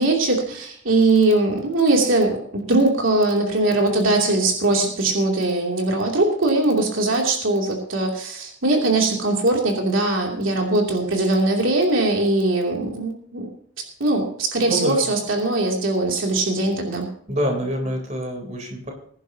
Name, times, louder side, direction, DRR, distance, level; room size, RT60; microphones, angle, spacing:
voice 1, 0.0-13.5 13.8-17.1, right 2 dB, 80° right, 0 dB, 2.9 m, -21 dB
voice 2, 14.7-15.1 17.3-18.9, equal, 35° right, 2 dB, 3.5 m, -26 dB
21.5 x 11.0 x 2.9 m, 0.62 s
head